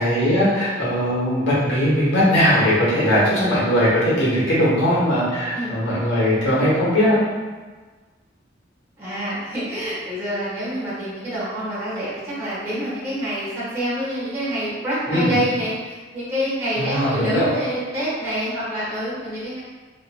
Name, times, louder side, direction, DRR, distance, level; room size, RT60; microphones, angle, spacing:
voice 1, 0.0-7.2 15.1-15.3 16.8-17.5, equal, 80° left, -9 dB, 1.2 m, -19 dB
voice 2, 9.0-19.6, equal, 15° right, -10 dB, 1.1 m, -26 dB
3.0 x 2.5 x 2.2 m, 1.4 s
head